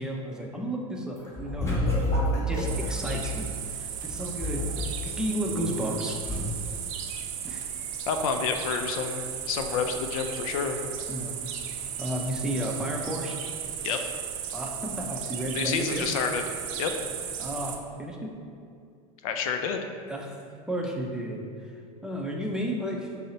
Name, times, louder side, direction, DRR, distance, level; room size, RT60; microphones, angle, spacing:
voice 1, 0.0-6.2 7.4-7.6 9.7-9.8 11.1-11.4 12.0-13.4 14.5-16.1 17.4-18.3 20.1-20.4 20.7-21.7 22.0-23.1, right 1 dB, 5° right, -1 dB, 0.5 m, -33 dB
sound 1, 1.2-3.2 4.0-6.0 6.2-6.4, left 1 dB, 15° left, 1.3 m, -28 dB
sound 2, 2.6-17.8, right 8 dB, 65° right, 0.5 m, -35 dB
voice 2, 8.1-10.8 13.8-14.0 15.5-16.4 16.8-16.9 19.2-19.8, left 6 dB, 75° left, 5 dB, 0.4 m, -29 dB
5.3 x 2.1 x 3.9 m, 2.4 s
supercardioid pair, 105°, 18 cm